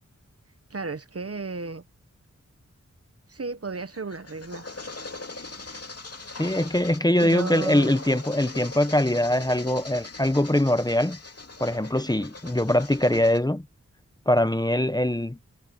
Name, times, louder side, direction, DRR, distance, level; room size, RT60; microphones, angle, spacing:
voice 1, 0.7-1.8 3.3-4.7 7.2-7.9, right 4 dB, 50° right, 1.2 m, -33 dB
sound 1, 3.7-13.4, left 3 dB, 55° left, 2.8 m, -41 dB
voice 2, 6.4-11.2 11.6-13.6 14.3-15.4, left 1 dB, 15° left, 1.0 m, -22 dB
wide cardioid pair, 70°, 30 cm